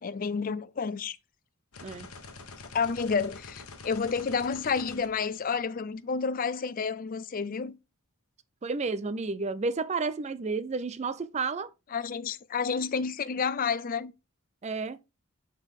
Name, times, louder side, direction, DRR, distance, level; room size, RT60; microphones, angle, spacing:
voice 1, 0.0-1.2 2.7-7.8 11.9-14.1, left 5 dB, 40° left, 0.4 m, -30 dB
sound 1, 1.7-5.9, left 3 dB, 85° left, 1.1 m, -46 dB
voice 2, 8.6-11.7 14.6-15.0, right 4 dB, 30° right, 0.4 m, -31 dB
7.9 x 4.4 x 3.6 m
head